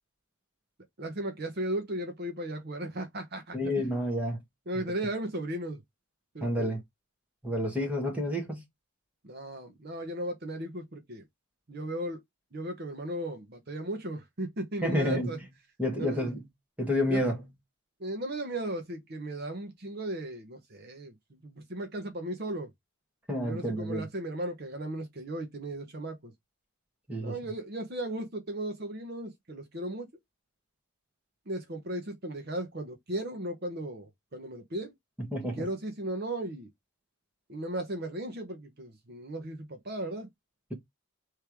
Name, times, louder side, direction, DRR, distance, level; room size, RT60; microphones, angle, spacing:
voice 1, 1.0-3.9 4.7-5.8 6.3-6.7 9.2-11.2 11.7-12.2 12.5-15.4 16.0-16.3 17.1-17.2 18.0-22.7 23.4-26.3 27.2-30.1 31.5-34.9 35.6-36.7 37.5-40.3, right 1 dB, 45° right, 0.9 m, -36 dB
voice 2, 3.5-4.4 6.4-6.8 7.4-8.6 14.8-15.4 15.8-16.4 16.8-17.5 23.3-24.1 27.1-27.3 35.2-35.7, left 1 dB, 5° right, 1.6 m, -29 dB
3.5 x 3.3 x 4.6 m
head